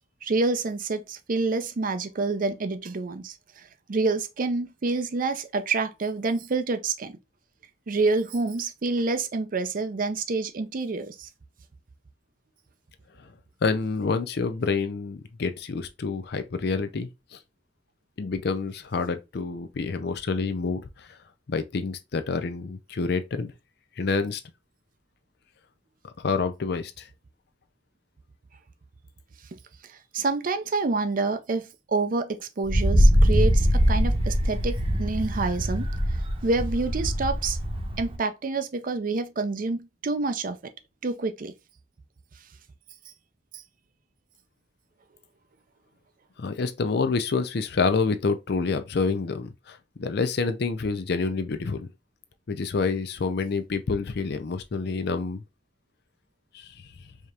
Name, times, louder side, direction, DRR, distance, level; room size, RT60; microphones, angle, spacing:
voice 1, 0.2-3.6 3.9-7.1 7.9-11.3 29.5-29.6 29.9-35.9 36.4-37.6 38.0-40.6 41.0-41.5, right 3 dB, 50° right, 0.5 m, -27 dB
voice 2, 13.6-17.4 18.2-21.1 21.5-23.5 24.0-24.4 26.2-27.1 46.4-51.9 52.5-55.4 56.5-56.7, left 4 dB, 65° left, 0.5 m, -28 dB
Wind, 32.6-38.2, equal, 30° right, 0.9 m, -22 dB
4.8 x 2.9 x 2.4 m
head